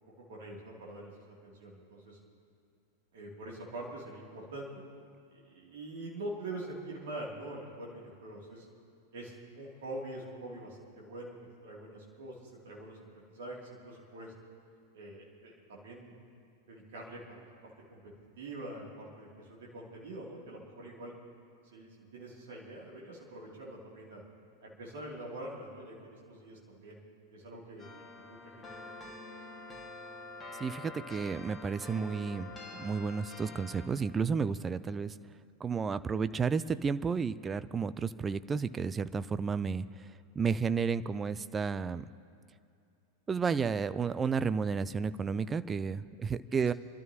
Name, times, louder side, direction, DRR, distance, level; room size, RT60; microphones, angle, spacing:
voice 1, 0.3-2.2 3.1-4.7 5.3-8.7 9.1-11.4 11.6-14.3 14.9-16.1 16.7-21.1 21.7-24.2 24.6-27.0 27.3-27.9 28.2-28.7 29.0-29.3, right 1 dB, 60° right, -4 dB, 2.9 m, -45 dB
sound 1, 27.8-33.9, left 2 dB, 15° left, 1.8 m, -47 dB
voice 2, 30.6-35.1 35.6-40.1 40.4-42.1 43.3-46.7, right 5 dB, 20° right, 14 dB, 0.4 m, -32 dB
27.5 x 12.0 x 3.0 m, 2.5 s
figure-of-eight pair, 90°, 0 cm